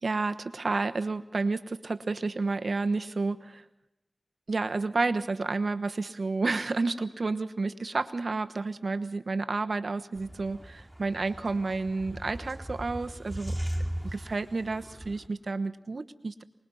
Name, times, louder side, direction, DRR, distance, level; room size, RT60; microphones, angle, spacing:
voice 1, 0.0-3.6 4.5-13.6 14.0-16.4, right 3 dB, 75° right, 10 dB, 1.1 m, -30 dB
sound 1, 10.1-15.3, right 1 dB, 10° right, 3.9 m, -38 dB
25.0 x 20.5 x 5.6 m, 0.85 s
cardioid pair, 40°, 0 cm